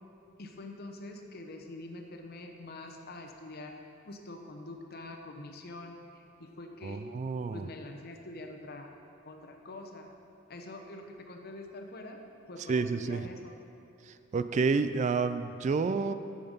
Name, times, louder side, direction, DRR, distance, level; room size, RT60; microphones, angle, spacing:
voice 1, 0.4-3.8 4.0-7.0 7.5-8.9 9.2-10.1 10.5-12.2 12.5-13.5, left 2 dB, 55° left, 4 dB, 0.9 m, -45 dB
voice 2, 6.8-7.7 12.7-13.2 14.3-16.1, right 4 dB, 40° right, 11 dB, 0.3 m, -29 dB
8.7 x 7.7 x 5.4 m, 2.6 s
head